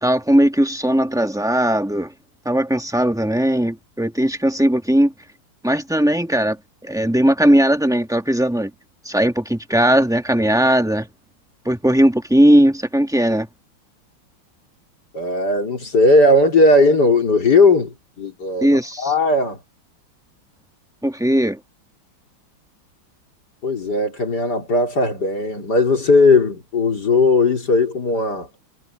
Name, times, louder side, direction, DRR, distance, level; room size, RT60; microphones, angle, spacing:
voice 1, 0.0-2.1 2.4-5.1 5.6-6.6 6.8-8.7 9.0-11.1 11.6-13.5 18.6-19.1 21.0-21.6, right 1 dB, ahead, 1.0 m, -18 dB
voice 2, 15.1-18.7 19.0-19.6 23.6-28.5, left 2 dB, 50° left, 4.1 m, -17 dB
omnidirectional pair, 2.3 m